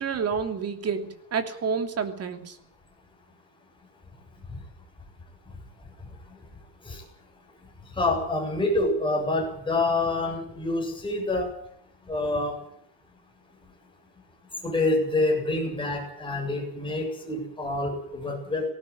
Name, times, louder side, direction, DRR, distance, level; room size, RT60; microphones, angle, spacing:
voice 1, 0.0-2.6, right 6 dB, 35° right, 7 dB, 3.0 m, -29 dB
voice 2, 8.0-11.5 12.1-12.6 14.6-18.6, left 2 dB, 10° left, 0 dB, 8.0 m, -27 dB
19.5 x 18.0 x 9.2 m, 0.68 s
cardioid pair, 170°, 43 cm